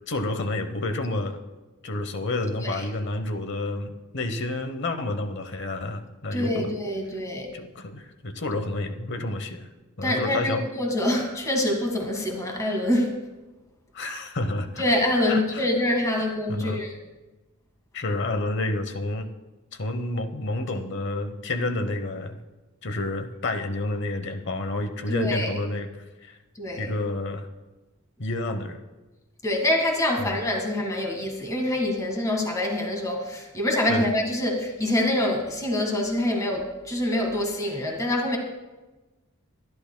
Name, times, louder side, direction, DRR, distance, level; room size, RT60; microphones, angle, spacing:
voice 1, 0.1-1.4 1.8-6.7 7.5-9.7 10.0-10.6 13.9-14.8 15.3-15.7 16.5-16.8 17.9-19.3 19.7-22.4 22.8-25.9 26.2-26.4 26.8-27.5 28.2-28.8 30.2-30.3 33.9-34.1, left 2 dB, 55° left, 8 dB, 0.9 m, -29 dB
voice 2, 6.3-7.5 10.0-13.1 14.8-17.0 25.1-25.5 26.6-27.0 29.4-38.4, left 1 dB, 15° left, 1 dB, 1.7 m, -25 dB
23.5 x 11.0 x 2.2 m, 1.1 s
head